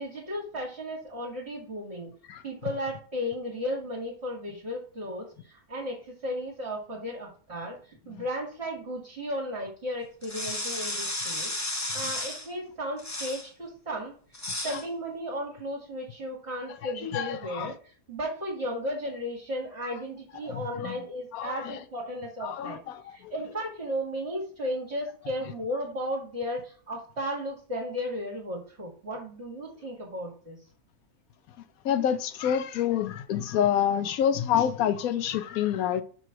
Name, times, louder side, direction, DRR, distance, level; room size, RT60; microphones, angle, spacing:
voice 1, 0.0-2.1 2.4-14.1 14.6-22.8 23.1-30.6, equal, 45° right, 2.2 m, -35 dB
sound 1, 10.2-12.5 13.0-13.5 14.3-14.8, left 2 dB, 15° left, 0.6 m, -33 dB
voice 2, 16.8-17.7 20.4-21.0 21.3-21.8 22.4-23.3 31.8-36.0, left 9 dB, 70° left, 1.1 m, -28 dB
6.9 x 3.1 x 5.9 m
omnidirectional pair, 1.7 m